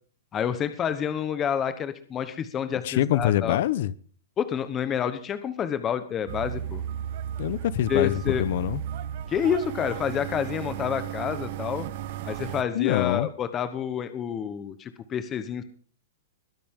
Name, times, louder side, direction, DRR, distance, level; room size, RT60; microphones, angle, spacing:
voice 1, 0.3-3.6 4.4-6.8 7.9-8.4 9.3-11.9 12.2-15.6, left 8 dB, 20° left, 1.0 m, -28 dB
voice 2, 2.8-3.9 7.4-8.8 12.7-13.3, left 13 dB, 55° left, 0.9 m, -25 dB
sound 1, 6.3-12.6, right 11 dB, 45° right, 1.4 m, -34 dB
21.5 x 10.5 x 3.7 m
hypercardioid pair, 165°, 0 cm